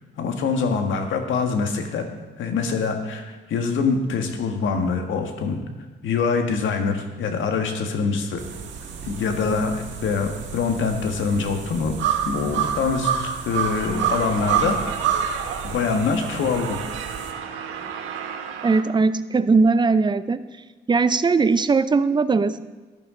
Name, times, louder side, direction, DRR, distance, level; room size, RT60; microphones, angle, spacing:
voice 1, 0.2-2.1 2.4-5.6 6.0-8.4 9.0-11.9 12.3-14.8 15.6-16.8, left 5 dB, 75° left, 5 dB, 1.7 m, -24 dB
sound 1, 8.4-17.3, right 8 dB, 65° right, 1.7 m, -28 dB
sound 2, 13.5-18.8, right 7 dB, 90° right, 1.3 m, -34 dB
voice 2, 18.6-20.4 20.9-22.6, right 4 dB, 20° right, 13 dB, 0.6 m, -19 dB
14.0 x 10.5 x 3.9 m, 1.3 s
cardioid pair, 90°, 20 cm